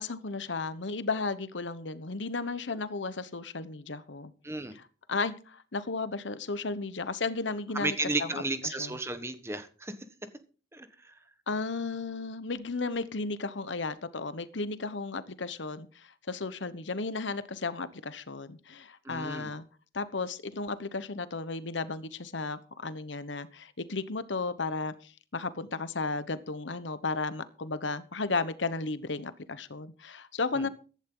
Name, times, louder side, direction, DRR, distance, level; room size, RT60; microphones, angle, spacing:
voice 1, 0.0-4.3 4.7-4.8 5.1-9.0 11.5-19.6 19.9-30.7, left 3 dB, 90° left, 1.1 m, -34 dB
voice 2, 4.4-4.7 7.7-10.0 10.7-11.2 19.0-19.5 30.5-30.7, right 2 dB, 15° right, 1.2 m, -34 dB
15.0 x 11.5 x 3.9 m
head